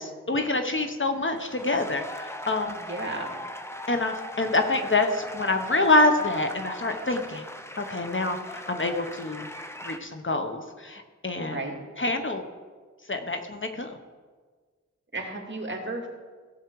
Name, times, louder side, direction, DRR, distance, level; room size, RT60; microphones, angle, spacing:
voice 1, 0.0-2.8 3.9-7.5 7.8-8.4 8.7-9.5 9.8-11.6 12.0-12.4 13.1-13.9, left 2 dB, 40° left, 6 dB, 1.0 m, -26 dB
sound 1, 1.1-10.0, equal, 10° left, 0.9 m, -39 dB
voice 2, 2.8-3.3 11.4-11.7 15.1-16.1, right 2 dB, 40° right, 0 dB, 2.4 m, -33 dB
17.0 x 7.3 x 4.7 m, 1.5 s
wide cardioid pair, 75°, 30 cm